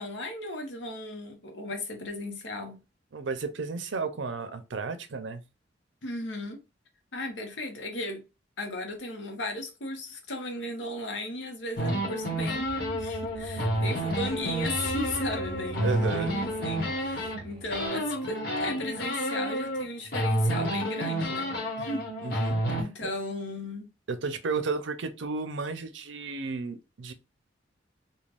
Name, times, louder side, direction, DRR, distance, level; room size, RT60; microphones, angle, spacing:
voice 1, 0.0-2.8 6.0-6.6 7.1-8.2 8.6-22.5 22.7-23.9, left 1 dB, 80° left, 0.9 m, -36 dB
voice 2, 3.1-5.4 15.8-16.3 22.2-22.6 23.0-23.1 24.1-27.1, right 4 dB, 80° right, 0.5 m, -33 dB
sound 1, 11.8-17.4 17.7-19.8 20.1-22.8, equal, 55° left, 1.2 m, -30 dB
sound 2, 12.2-17.9, right 2 dB, 30° right, 1.5 m, -41 dB
3.3 x 2.3 x 2.4 m
head